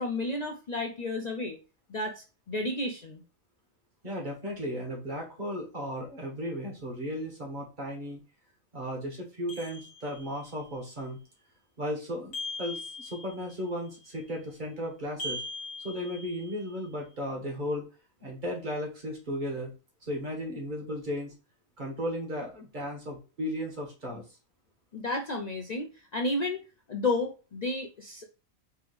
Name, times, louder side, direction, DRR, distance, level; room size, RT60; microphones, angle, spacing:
voice 1, 0.0-1.6 1.9-3.2 24.9-26.6 26.9-28.2, left 2 dB, 70° left, 3 dB, 0.4 m, -32 dB
voice 2, 4.0-8.2 8.7-11.2 11.8-15.4 15.8-17.9 18.2-19.7 20.0-21.3 21.8-24.2, equal, 35° right, 0 dB, 1.7 m, -35 dB
sound 1, 9.5-10.5 12.3-13.6 15.2-16.7, left 2 dB, 50° left, 1.7 m, -40 dB
4.4 x 3.4 x 3.3 m, 0.32 s
omnidirectional pair, 1.4 m